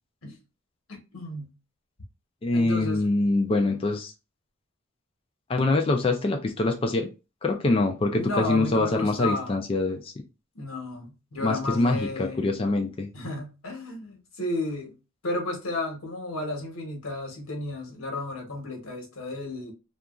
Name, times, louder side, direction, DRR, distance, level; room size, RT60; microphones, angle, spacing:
voice 1, 0.9-1.5 2.5-3.0 8.1-9.5 10.5-12.6 13.1-14.9 15.2-19.7, left 2 dB, 90° left, 1.1 m, -33 dB
voice 2, 2.4-4.1 5.5-7.1 7.4-10.1 11.4-13.1, left 2 dB, 25° left, 0.3 m, -24 dB
2.8 x 2.4 x 2.4 m
head